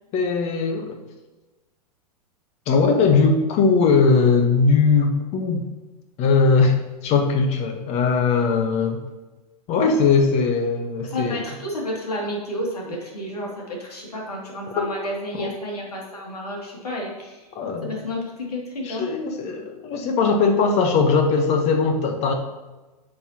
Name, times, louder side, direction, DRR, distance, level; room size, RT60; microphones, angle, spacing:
voice 1, 0.1-1.0 2.7-5.6 6.2-6.8 7.0-9.0 9.7-11.4 14.8-14.9 15.3-15.5 17.5-18.0 18.8-22.3, left 4 dB, 35° left, 4 dB, 1.3 m, -20 dB
voice 2, 11.1-17.5 17.8-19.1, left 1 dB, 75° left, -2 dB, 2.7 m, -31 dB
10.5 x 6.6 x 3.0 m, 1.2 s
figure-of-eight pair, 100°, 20 cm